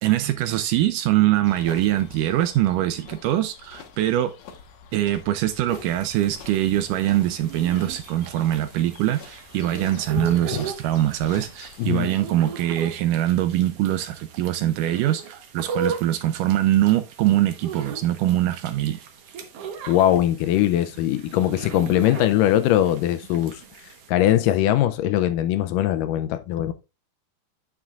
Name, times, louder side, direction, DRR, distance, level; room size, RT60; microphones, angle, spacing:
voice 1, 0.0-4.3 4.9-19.0, right 13 dB, 80° right, 1.9 m, -23 dB
sound 1, 1.4-11.9, left 6 dB, 65° left, 1.9 m, -46 dB
sound 2, 5.7-24.1, right 5 dB, 65° right, 1.6 m, -38 dB
voice 2, 19.9-23.6 24.1-26.7, left 12 dB, 80° left, 2.0 m, -21 dB
8.9 x 7.4 x 2.3 m
omnidirectional pair, 4.0 m